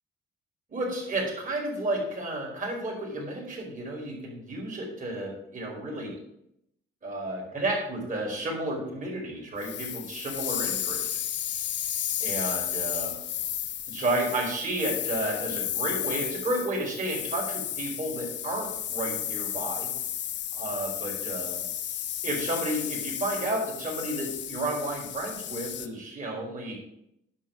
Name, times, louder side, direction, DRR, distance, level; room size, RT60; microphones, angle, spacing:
voice 1, 0.7-6.1 7.0-11.0 12.2-13.2 13.9-19.9 20.5-21.6 22.2-26.8, right 1 dB, 40° right, -1 dB, 4.5 m, -32 dB
sound 1, 9.6-25.9, left 10 dB, 65° left, 0.8 m, -33 dB
10.5 x 4.6 x 7.6 m, 0.78 s
cardioid pair, 90°, 20 cm